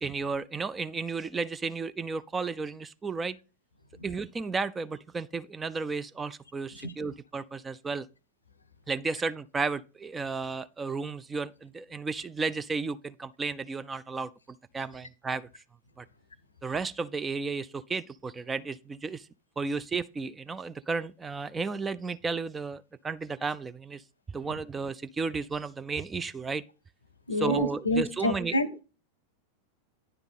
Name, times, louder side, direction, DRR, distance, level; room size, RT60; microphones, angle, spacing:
voice 1, 0.0-3.4 4.0-8.1 8.9-14.3 14.7-15.5 16.0-16.1 16.6-19.3 19.6-24.0 24.3-26.6 27.4-28.6, right 4 dB, 15° right, 0.3 m, -33 dB
voice 2, 27.3-28.8, left 1 dB, 80° left, 0.6 m, -28 dB
9.7 x 3.5 x 5.5 m
figure-of-eight pair, 90°, 0 cm